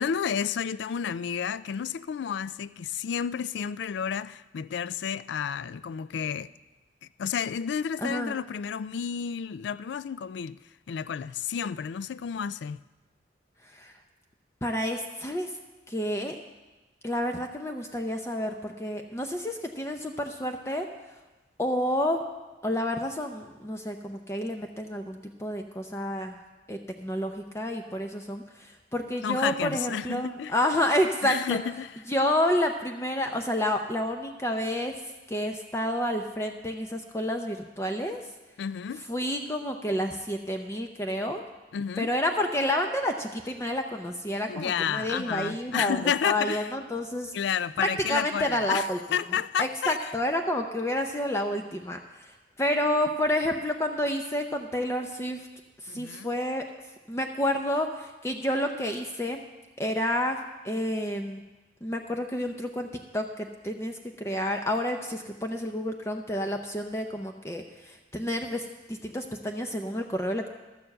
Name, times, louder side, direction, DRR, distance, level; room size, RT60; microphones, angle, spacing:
voice 1, 0.0-6.5 7.0-10.6 10.9-12.8 29.2-30.5 31.2-32.0 38.6-39.0 41.7-42.1 44.5-46.7 47.3-50.1 55.9-56.3, left 7 dB, 70° left, 0.3 m, -31 dB
voice 2, 8.0-8.4 13.7-13.9 14.6-15.5 15.9-16.4 17.0-20.9 21.6-22.2 22.6-26.4 26.7-31.6 32.1-34.9 35.3-38.2 39.1-41.4 42.0-46.0 46.2-47.3 47.8-49.0 49.6-52.3 52.6-55.5 55.8-56.6 57.1-59.4 59.8-61.4 61.8-70.5, left 1 dB, 15° left, 0.5 m, -29 dB
12.0 x 6.8 x 7.6 m
head